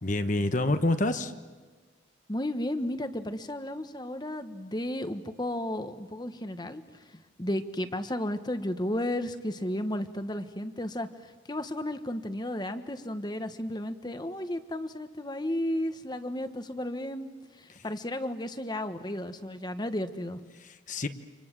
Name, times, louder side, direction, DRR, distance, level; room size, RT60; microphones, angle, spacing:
voice 1, 0.0-1.3 17.7-17.8 20.6-21.1, left 2 dB, 40° left, 8 dB, 1.2 m, -27 dB
voice 2, 2.3-6.8 7.1-11.1 11.5-17.3 17.6-20.4, left 1 dB, 20° left, 9 dB, 1.3 m, -33 dB
29.5 x 26.5 x 7.6 m, 1.4 s
head